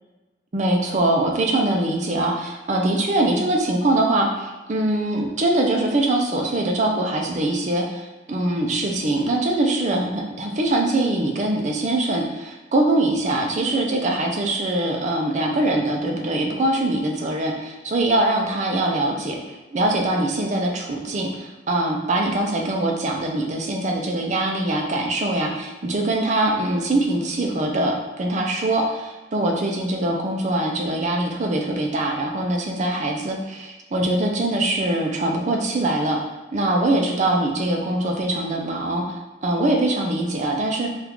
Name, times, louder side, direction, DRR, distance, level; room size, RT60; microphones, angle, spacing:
voice 1, 0.5-36.2 36.5-40.9, right 1 dB, 40° right, 1 dB, 0.5 m, -23 dB
3.6 x 2.4 x 3.0 m, 1.1 s
head